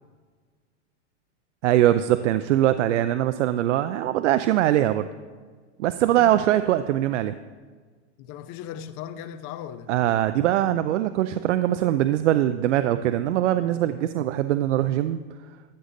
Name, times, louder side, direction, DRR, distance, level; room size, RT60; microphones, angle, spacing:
voice 1, 1.6-5.1 5.8-7.3 9.9-15.2, right 12 dB, 90° right, 0.5 m, -22 dB
voice 2, 6.2-6.5 8.2-9.9, left 9 dB, 40° left, 0.6 m, -38 dB
13.5 x 6.6 x 3.9 m
supercardioid pair, 130°, 35 cm